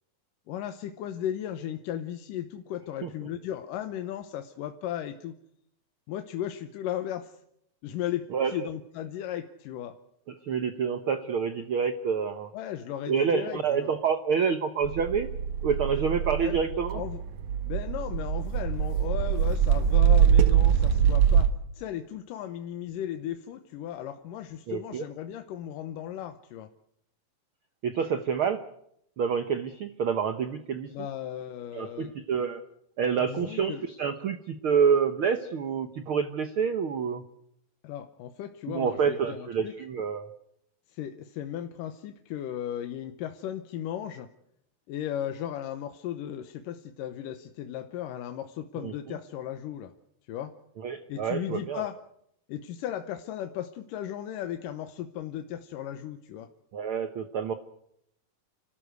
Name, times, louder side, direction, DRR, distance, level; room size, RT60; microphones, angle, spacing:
voice 1, 0.5-5.3 6.1-7.4 7.8-10.0 12.5-14.0 16.4-16.6 16.9-17.2 17.6-26.7 30.9-32.1 33.3-33.9 37.8-39.7 40.9-44.3 44.9-49.9 50.3-50.6 51.1-52.0 52.5-56.5, left 11 dB, 75° left, 8 dB, 2.5 m, -36 dB
voice 2, 10.4-12.5 13.1-15.3 15.6-17.0 24.7-25.0 27.8-28.6 29.2-30.9 31.7-32.6 33.0-37.2 38.7-40.3 48.8-49.2 50.8-51.8 56.7-57.5, right 6 dB, 85° right, 9 dB, 1.1 m, -28 dB
sound 1, 14.8-21.5, right 8 dB, 65° right, 2.4 m, -23 dB
30.0 x 13.5 x 8.0 m, 0.74 s
omnidirectional pair, 4.0 m